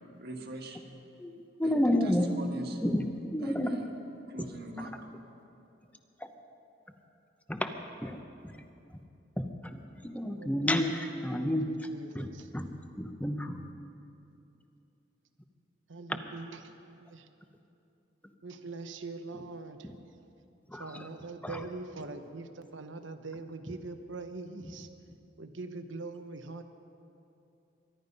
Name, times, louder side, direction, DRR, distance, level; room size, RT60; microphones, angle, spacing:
voice 1, 0.2-0.8 1.6-2.8 3.4-3.9 4.3-5.0, right 2 dB, 55° right, 2 dB, 1.7 m, -42 dB
voice 2, 1.2-2.3 2.7-3.9 4.4-4.5 6.2-6.3 7.5-7.7 8.0-8.2 8.4-8.6 9.4-11.9 12.1-12.7 13.0-13.6 16.1-16.2 19.3-19.4 19.8-20.0 20.7-21.1 21.4-21.7 24.6-24.9, left 1 dB, 10° left, 6 dB, 0.8 m, -31 dB
voice 3, 10.2-10.7 11.4-12.3 15.9-17.2 18.4-19.8 20.8-24.9 25.4-26.6, right 3 dB, 80° right, 8 dB, 0.9 m, -43 dB
23.5 x 11.5 x 5.4 m, 2.7 s
head